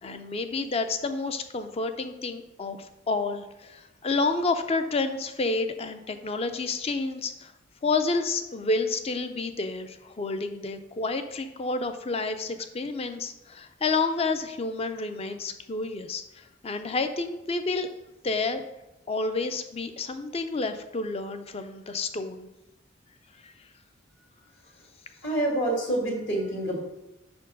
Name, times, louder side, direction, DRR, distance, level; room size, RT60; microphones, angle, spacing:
voice 1, 0.0-7.5 7.8-17.9 18.2-18.6 19.1-22.5 23.4-23.5, left 3 dB, 30° left, 9 dB, 0.4 m, -29 dB
voice 2, 25.2-26.8, right 1 dB, 60° left, -2 dB, 1.7 m, -27 dB
5.5 x 4.4 x 5.2 m, 0.98 s
head